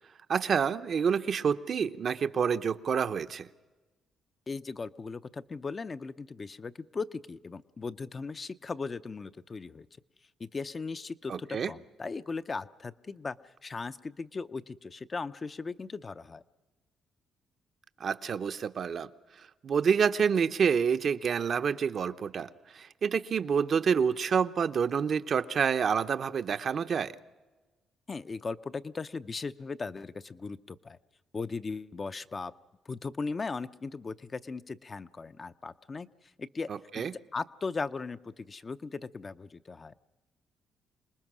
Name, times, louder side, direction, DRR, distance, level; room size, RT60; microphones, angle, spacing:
voice 1, 0.3-3.5 11.3-11.7 18.0-19.1 19.4-27.1 36.7-37.1, right 6 dB, 55° right, 9 dB, 0.8 m, -28 dB
voice 2, 4.5-9.9 10.4-13.4 13.6-16.4 28.1-31.0 31.3-32.5 32.9-36.1 36.4-36.7 37.0-39.9, left 4 dB, 35° left, 11 dB, 0.6 m, -38 dB
26.5 x 20.0 x 6.2 m, 1.2 s
cardioid pair, 90°, 0 cm